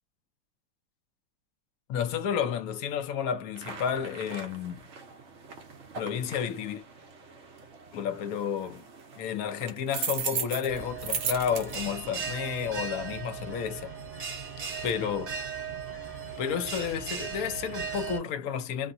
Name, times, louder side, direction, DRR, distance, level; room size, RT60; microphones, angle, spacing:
voice 1, 1.9-4.8 5.9-6.8 7.9-8.8 9.2-13.9 14.8-15.4 16.4-18.9, left 8 dB, 70° left, 0.9 m, -31 dB
sound 1, 3.5-12.5, right 6 dB, 65° right, 0.6 m, -38 dB
Bell, 10.7-18.2, right 6 dB, 40° right, 0.9 m, -37 dB
3.7 x 2.1 x 2.6 m
omnidirectional pair, 2.1 m